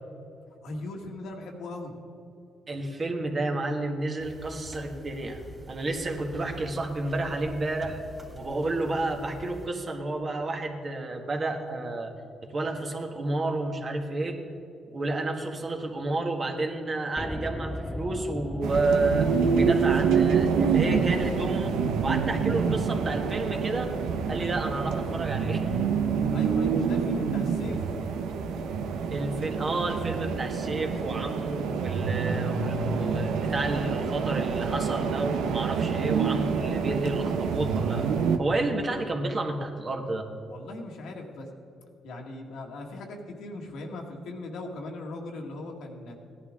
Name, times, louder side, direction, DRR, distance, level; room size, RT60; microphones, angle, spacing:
voice 1, 0.6-1.9 26.3-27.8 35.8-36.0 40.5-41.5 42.0-46.2, left 2 dB, 80° left, 1 dB, 1.9 m, -39 dB
voice 2, 2.7-5.4 5.7-8.0 8.3-12.1 12.5-14.4 14.9-23.9 24.3-25.7 29.1-38.1 38.4-40.3, right 2 dB, 40° right, 3 dB, 1.7 m, -30 dB
sound 1, 4.2-9.7, right 1 dB, 20° right, 3.0 m, -46 dB
sound 2, 17.2-35.4 35.6-35.7, left 1 dB, 10° left, 0.6 m, -40 dB
sound 3, 18.6-38.4, right 6 dB, 90° right, 0.8 m, -27 dB
17.0 x 11.0 x 3.7 m, 2.6 s
cardioid pair, 90°, 0 cm